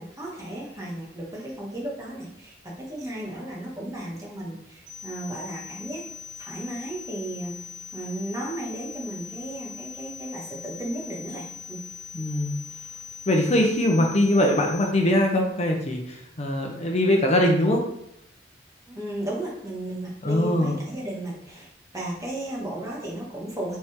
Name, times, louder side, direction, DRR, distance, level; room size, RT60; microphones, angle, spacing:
voice 1, 0.0-6.1 6.4-7.6 7.9-11.8 18.9-23.8, right 1 dB, 20° right, -4 dB, 1.9 m, -34 dB
sound 1, 4.9-14.9, left 7 dB, 80° right, 1.8 m, -41 dB
voice 2, 12.1-12.6 13.3-17.8 20.2-20.8, left 1 dB, 35° left, 1 dB, 0.9 m, -22 dB
7.5 x 4.4 x 3.7 m, 0.76 s
head